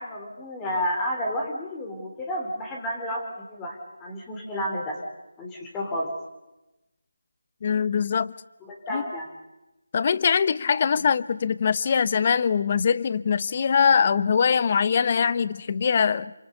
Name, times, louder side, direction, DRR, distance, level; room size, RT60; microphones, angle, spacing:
voice 1, 0.0-5.0 5.4-6.1 8.6-9.3 11.0-11.1, equal, 10° left, 3.4 m, -31 dB
voice 2, 7.6-8.3 8.9-9.0 9.9-16.3, left 6 dB, 35° left, 0.9 m, -22 dB
28.5 x 26.5 x 6.7 m
figure-of-eight pair, 165°, 0 cm